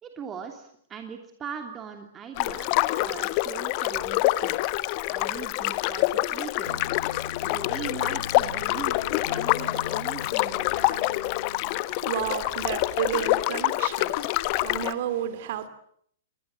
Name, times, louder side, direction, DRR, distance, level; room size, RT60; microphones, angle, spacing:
voice 1, 0.0-4.6 5.1-6.9 7.4-11.2, right 7 dB, 20° right, 3.0 m, -40 dB
sound 1, 2.4-14.9, left 19 dB, 40° left, 1.2 m, -26 dB
sound 2, 6.7-11.8, left 6 dB, 70° left, 1.5 m, -40 dB
voice 2, 11.5-15.7, right 10 dB, 50° right, 2.8 m, -32 dB
29.5 x 21.0 x 7.9 m
figure-of-eight pair, 105°, 0 cm